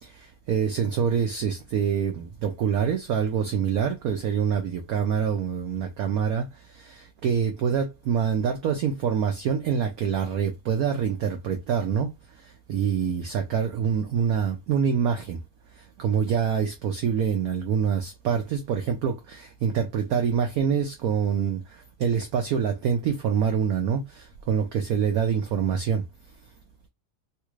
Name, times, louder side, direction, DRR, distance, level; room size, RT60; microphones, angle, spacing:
voice 1, 0.5-6.4 6.9-12.1 12.7-15.4 16.0-21.6 22.0-26.0, right 7 dB, 85° right, 0.8 m, -25 dB
3.2 x 2.4 x 3.1 m
omnidirectional pair, 2.1 m